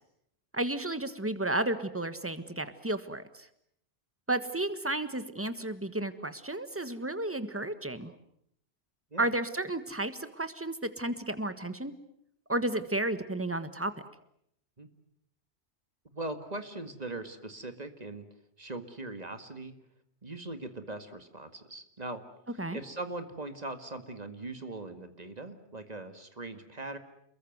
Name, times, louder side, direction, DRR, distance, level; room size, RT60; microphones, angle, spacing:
voice 1, 0.5-3.5 4.3-8.1 9.2-11.9 12.5-13.9 22.6-22.8, right 2 dB, 10° right, 11 dB, 1.5 m, -32 dB
voice 2, 16.1-18.3 18.6-19.7 20.2-22.2 22.7-27.0, right 2 dB, 40° right, 8 dB, 2.1 m, -40 dB
29.0 x 22.0 x 7.9 m, 0.73 s
omnidirectional pair, 1.1 m